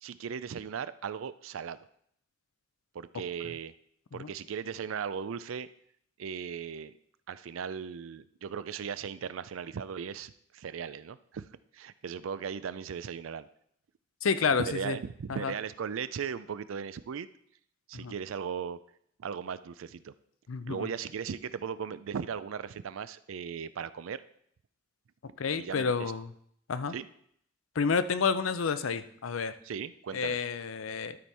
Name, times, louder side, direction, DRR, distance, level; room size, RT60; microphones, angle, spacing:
voice 1, 0.0-1.8 2.9-3.7 4.1-5.7 6.2-6.9 7.3-11.5 11.7-13.5 14.4-17.3 17.9-18.8 19.2-20.1 20.7-24.2 25.6-26.1 26.9-27.1 29.6-30.4, right 7 dB, 80° right, 15 dB, 0.4 m, -37 dB
voice 2, 14.2-15.0 15.3-15.5 17.9-18.1 20.5-20.9 25.4-26.3 26.7-26.9 27.8-29.5 30.1-31.2, left 5 dB, 85° left, 12 dB, 0.5 m, -30 dB
12.5 x 4.3 x 4.7 m, 0.67 s
head